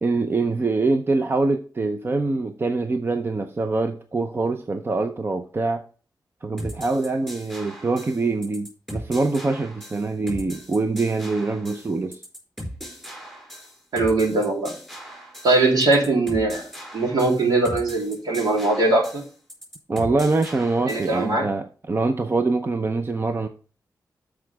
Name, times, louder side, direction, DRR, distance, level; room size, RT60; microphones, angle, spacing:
voice 1, 0.0-5.8 6.4-12.2 19.9-23.5, right 3 dB, 35° right, 0.6 m, -24 dB
sound 1, 6.6-21.2, equal, 5° right, 4.3 m, -38 dB
voice 2, 13.9-14.7 15.4-16.6 16.9-19.2 20.9-21.4, right 2 dB, 75° right, 3.3 m, -20 dB
12.5 x 4.9 x 3.4 m
wide cardioid pair, 120°, 7 cm